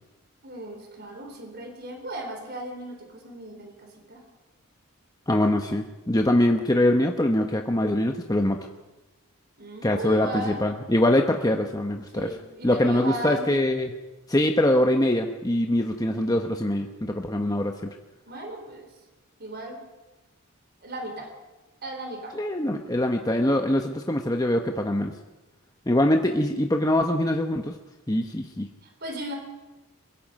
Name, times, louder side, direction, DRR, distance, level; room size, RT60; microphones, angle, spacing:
voice 1, 0.4-4.2 9.6-10.6 12.1-13.6 18.3-18.9 19.4-19.8 20.8-21.3 21.8-22.4 28.8-29.3, right 1 dB, 45° right, 3 dB, 4.3 m, -36 dB
voice 2, 5.3-8.6 9.8-12.4 12.6-13.9 14.3-17.7 22.3-25.1 25.9-27.7 28.1-28.7, left 1 dB, 15° left, 4 dB, 1.0 m, -23 dB
23.0 x 22.5 x 5.4 m, 1.0 s
head